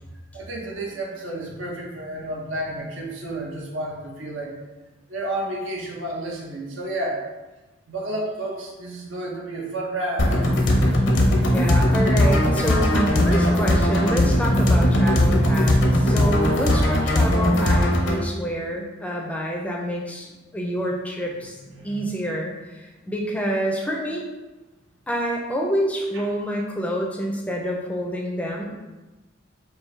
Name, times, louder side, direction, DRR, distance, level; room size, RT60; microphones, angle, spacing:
voice 1, 0.3-4.5 5.1-7.2 7.9-10.5 21.7-22.0 26.1-26.2, right 1 dB, 90° right, -2 dB, 0.9 m, -31 dB
sound 1, 10.2-18.2, left 1 dB, 65° left, 0.7 m, -19 dB
voice 2, 11.5-21.6 21.8-24.2 25.1-28.6, equal, 5° left, -1 dB, 0.4 m, -27 dB
4.5 x 2.6 x 3.3 m, 1.1 s
head